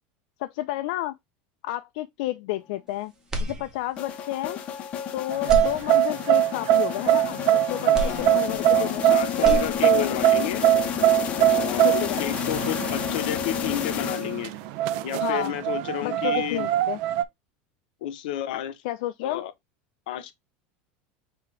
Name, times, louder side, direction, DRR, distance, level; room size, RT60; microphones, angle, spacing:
voice 1, 0.4-1.2 1.6-3.1 3.4-4.6 5.1-9.2 9.8-10.2 11.8-12.2 15.2-15.5 16.0-17.0 18.8-19.4, left 16 dB, 60° left, 0.4 m, -31 dB
sound 1, 3.3-4.2 4.6-4.7 5.4-6.4 7.9-9.0 9.3-10.2, equal, 15° right, 0.8 m, -32 dB
sound 2, 4.0-14.6, left 9 dB, 25° left, 0.6 m, -31 dB
sound 3, 5.3-17.2, right 14 dB, 50° right, 0.4 m, -22 dB
voice 2, 7.9-8.3 8.7-10.6 11.5-14.5 15.0-16.7 18.0-18.8 19.2-19.5 20.1-20.3, left 11 dB, 80° left, 0.7 m, -31 dB
6.0 x 2.8 x 3.2 m
supercardioid pair, 175°, 5 cm